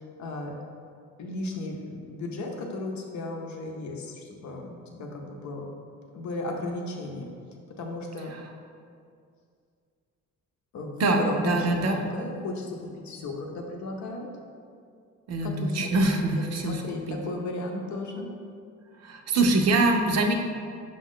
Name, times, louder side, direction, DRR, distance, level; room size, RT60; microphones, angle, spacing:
voice 1, 0.2-0.5 1.2-5.7 6.1-7.3 7.8-8.3 10.7-12.7 13.0-14.3 15.4-15.9 16.5-18.3, left 2 dB, 70° left, 1 dB, 0.7 m, -34 dB
voice 2, 11.0-12.0 15.3-17.2 19.0-20.3, right 2 dB, 55° right, 3 dB, 0.5 m, -24 dB
5.0 x 2.3 x 3.6 m, 2.3 s
cardioid pair, 90°, 30 cm